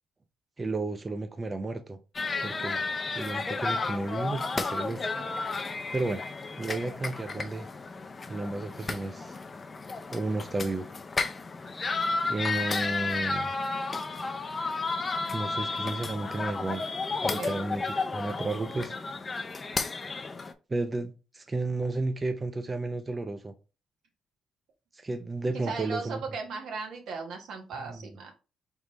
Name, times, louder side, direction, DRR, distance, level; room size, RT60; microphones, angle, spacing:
voice 1, 0.6-2.0 2.4-2.8 3.1-5.1 5.9-6.2 6.6-7.7 8.3-9.4 10.1-10.9 12.3-13.5 15.3-16.8 17.2-17.8 18.1-18.9 20.7-23.5 24.9-26.2 27.8-28.0, right 2 dB, 25° right, 0.4 m, -32 dB
sound 1, 2.1-20.5, left 3 dB, 30° left, 0.5 m, -32 dB
voice 2, 17.4-17.7 25.5-28.3, right 4 dB, 75° right, 1.1 m, -37 dB
3.9 x 3.5 x 3.1 m
cardioid pair, 90°, 0 cm